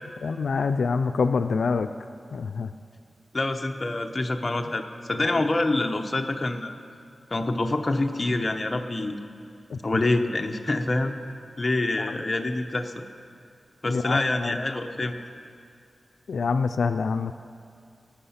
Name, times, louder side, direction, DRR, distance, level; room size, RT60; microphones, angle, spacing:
voice 1, 0.2-1.9 2.3-2.7 9.7-10.0 12.0-12.2 13.9-14.6 16.3-17.3, left 5 dB, 85° left, 9 dB, 0.3 m, -26 dB
voice 2, 3.3-6.8 7.3-9.2 9.8-11.1 11.6-13.0 13.8-15.1, left 2 dB, 30° left, 4 dB, 0.8 m, -26 dB
18.0 x 8.5 x 5.7 m, 2.3 s
wide cardioid pair, 140°, 0 cm